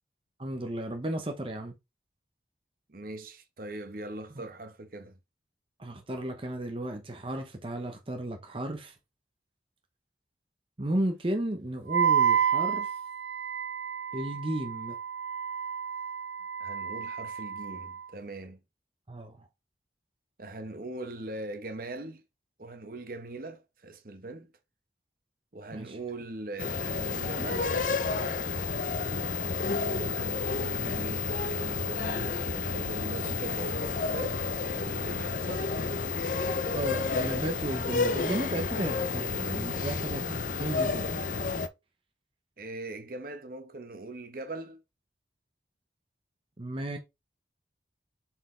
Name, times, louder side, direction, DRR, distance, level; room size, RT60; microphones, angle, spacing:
voice 1, 0.4-1.8 4.4-4.5 5.8-8.9 10.8-12.9 14.1-15.0 19.1-19.5 25.7-26.0 36.7-41.4 46.6-47.0, right 1 dB, 30° right, 0.8 m, -34 dB
voice 2, 2.9-5.2 16.6-18.6 20.4-22.2 22.6-24.5 25.5-27.7 29.9-35.7 37.3-37.4 39.7-40.0 40.9-41.0 42.6-44.8, right 2 dB, 50° right, 1.0 m, -41 dB
Wind instrument woodwind instrument, 11.9-18.0, right 8 dB, 70° right, 0.5 m, -30 dB
sound 1, 26.6-41.7, left 4 dB, 45° left, 0.5 m, -30 dB
7.4 x 4.5 x 3.2 m
head